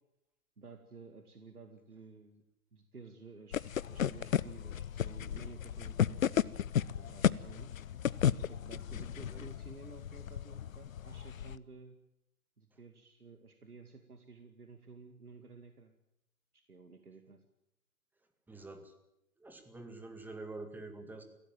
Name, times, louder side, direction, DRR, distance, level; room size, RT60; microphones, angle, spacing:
voice 1, 0.6-2.4 2.7-6.6 7.0-7.7 8.5-12.0 12.6-15.9 16.5-17.4, right 4 dB, 90° right, 6 dB, 2.3 m, -53 dB
sound 1, 3.5-11.6, left 9 dB, 65° left, 0.8 m, -34 dB
voice 2, 18.5-18.9 19.4-21.2, right 2 dB, 5° right, 7 dB, 2.1 m, -46 dB
23.0 x 17.0 x 9.1 m, 0.83 s
figure-of-eight pair, 130°, 44 cm